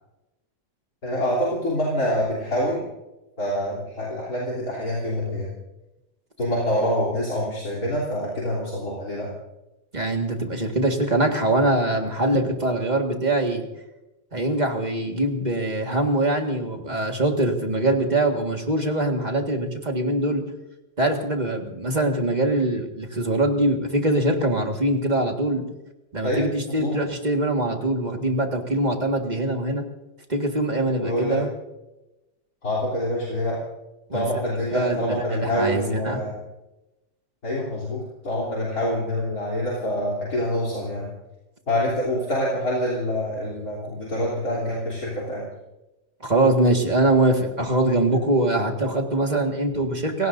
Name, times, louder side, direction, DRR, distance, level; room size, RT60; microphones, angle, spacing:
voice 1, 1.0-2.9 3.4-5.5 6.4-9.3 26.2-27.0 31.0-31.4 32.6-33.6 34.1-36.4 37.4-41.1 41.7-45.4, equal, 50° left, -4 dB, 3.9 m, -26 dB
voice 2, 9.9-13.7 14.3-20.4 21.0-25.6 26.1-29.8 30.3-31.5 34.1-34.2 34.5-36.2 46.2-50.3, right 1 dB, 25° right, 3 dB, 1.8 m, -23 dB
29.0 x 17.0 x 2.7 m, 1.0 s
omnidirectional pair, 1.9 m